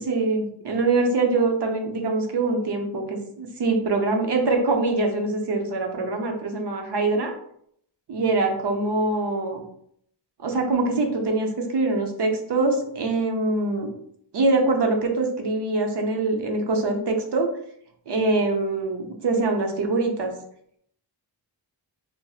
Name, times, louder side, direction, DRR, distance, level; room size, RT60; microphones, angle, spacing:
voice 1, 0.1-7.3 8.1-9.6 10.4-13.9 14.3-17.5 18.1-20.3, right 3 dB, 60° right, 3 dB, 0.7 m, -24 dB
4.0 x 2.0 x 2.3 m, 0.69 s
wide cardioid pair, 100°, 46 cm